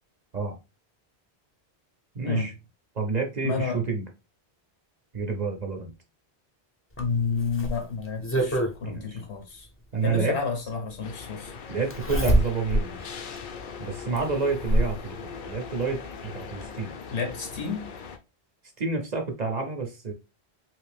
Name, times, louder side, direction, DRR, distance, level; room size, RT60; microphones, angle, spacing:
voice 1, 2.1-2.5 2.9-4.0 5.1-5.9 8.8-9.2 9.9-10.4 11.7-13.0 13.8-17.0 18.8-20.1, right 4 dB, 45° right, 0.7 m, -29 dB
voice 2, 3.4-3.8 7.0-9.7 10.0-11.5 17.1-17.9, left 5 dB, 80° left, 1.3 m, -30 dB
Zipper (clothing), 7.0-8.8 10.2-10.3 11.9-12.9 13.4-13.5 14.1-15.0 16.2-16.3 16.6-16.7, equal, 15° left, 0.5 m, -25 dB
sound 1, 11.0-18.2, left 5 dB, 60° left, 0.6 m, -40 dB
3.1 x 2.7 x 3.3 m
omnidirectional pair, 1.1 m